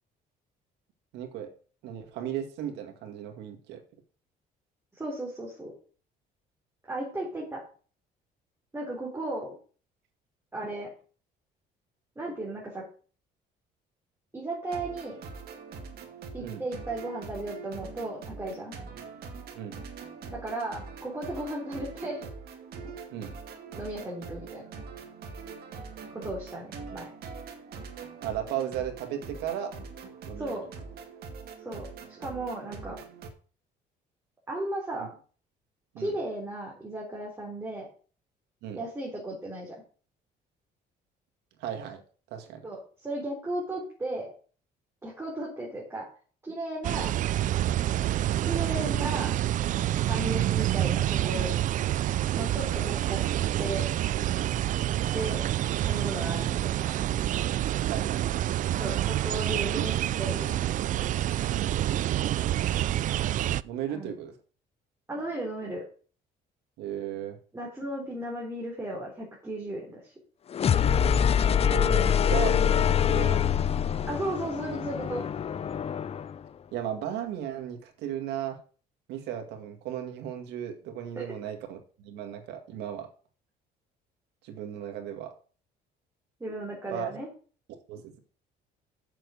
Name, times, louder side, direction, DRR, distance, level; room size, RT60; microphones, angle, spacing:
voice 1, 1.1-1.5 1.8-3.8 16.4-16.6 19.5-19.8 23.1-23.3 28.2-29.7 30.2-30.7 35.9-36.1 38.6-38.8 41.6-42.0 42.3-42.6 47.0-47.1 57.9-58.5 59.8-59.9 61.5-61.8 63.6-64.3 66.8-67.4 71.6-73.4 76.7-78.6 79.1-83.1 84.4-85.3 86.9-87.1 87.7-88.2, right 10 dB, 85° right, 6 dB, 2.1 m, -35 dB
voice 2, 4.9-5.7 6.9-7.6 8.7-9.5 10.5-10.9 12.2-12.8 14.3-15.2 16.3-18.8 20.3-22.3 22.8-23.0 23.8-24.7 26.1-27.1 30.4-30.6 31.6-31.9 32.2-33.0 34.5-35.1 36.0-37.9 38.7-39.8 42.6-44.3 45.0-46.1 46.4-47.1 48.4-49.3 50.1-51.5 52.3-53.2 53.6-53.9 55.0-55.4 55.8-57.0 58.8-60.7 63.9-64.1 65.1-65.8 67.5-70.1 74.1-75.2 81.2-81.3 86.4-87.3, right 1 dB, 15° right, -3 dB, 4.0 m, -35 dB
sound 1, 14.6-33.3, right 5 dB, 65° right, 2.1 m, -43 dB
sound 2, 46.8-63.6, right 13 dB, 50° right, 0.4 m, -27 dB
sound 3, 70.5-76.4, left 8 dB, 35° left, 0.6 m, -25 dB
7.5 x 7.0 x 6.5 m, 0.40 s
cardioid pair, 110°, 17 cm